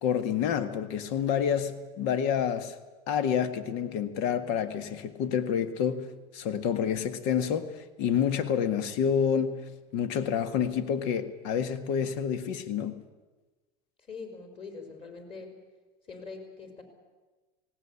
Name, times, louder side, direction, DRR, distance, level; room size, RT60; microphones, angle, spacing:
voice 1, 0.0-2.8 3.1-9.6 9.9-13.0, left 8 dB, 60° left, 1.8 m, -28 dB
voice 2, 14.1-15.5 16.1-16.8, left 4 dB, 25° left, 4.9 m, -43 dB
19.0 x 17.5 x 9.8 m
supercardioid pair, 130°, 20 cm